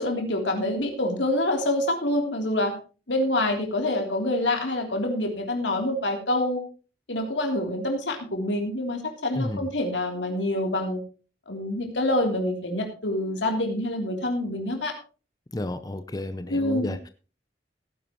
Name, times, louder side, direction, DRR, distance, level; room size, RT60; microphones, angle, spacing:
voice 1, 0.0-2.8 3.1-6.6 7.1-11.0 11.5-14.9 16.5-16.9, left 1 dB, 90° left, 3.3 m, -26 dB
voice 2, 9.4-9.7 15.5-17.1, left 1 dB, 20° left, 0.6 m, -31 dB
17.0 x 10.5 x 3.0 m
head